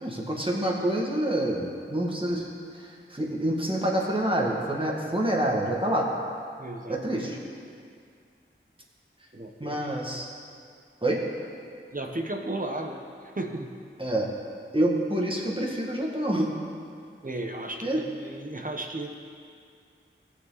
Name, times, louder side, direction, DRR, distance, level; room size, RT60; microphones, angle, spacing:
voice 1, 0.0-2.5 2.8-6.1 6.9-7.4 9.6-10.3 11.0-11.2 14.0-14.3 14.7-16.5 17.8-18.0, right 1 dB, 25° right, -2 dB, 2.0 m, -27 dB
voice 2, 6.6-7.0 9.3-9.8 11.9-13.8 17.2-19.1, right 2 dB, 40° right, 2 dB, 1.1 m, -34 dB
18.0 x 6.8 x 4.1 m, 2.3 s
wide cardioid pair, 45°, 21 cm